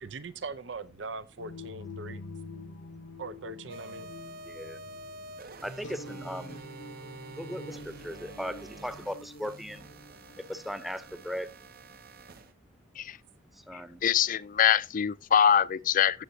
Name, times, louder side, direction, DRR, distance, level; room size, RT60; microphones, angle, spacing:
voice 1, 0.0-2.2 3.2-4.1 10.1-10.2, right 3 dB, 80° right, 0.7 m, -41 dB
sound 1, 1.4-11.3, left 2 dB, 80° left, 0.9 m, -47 dB
sound 2, 3.7-12.5, right 2 dB, 55° right, 0.9 m, -47 dB
voice 2, 4.5-4.8 5.6-6.6 7.4-9.9 10.5-11.5 13.7-14.0, equal, ahead, 0.7 m, -38 dB
voice 3, 13.7-16.2, left 8 dB, 45° left, 0.4 m, -24 dB
15.0 x 7.7 x 2.8 m
head